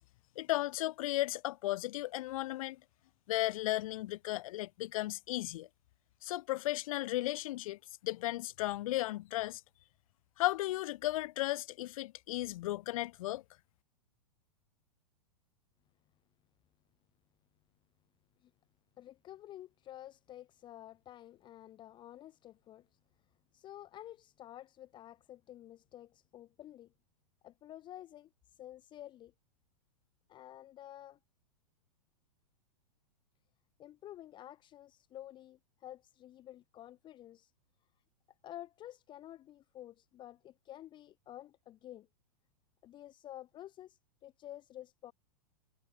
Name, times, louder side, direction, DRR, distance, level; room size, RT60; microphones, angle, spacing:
voice 1, 0.4-2.8 3.3-5.7 6.2-9.6 10.4-13.4, left 17 dB, 60° left, 0.5 m, -35 dB
voice 2, 19.0-22.9 23.5-26.9 27.4-28.3 28.6-29.3 30.3-31.2 33.8-37.5 38.4-42.1 42.8-45.1, left 13 dB, 25° left, 0.8 m, -51 dB
hypercardioid pair, 140°, 20 cm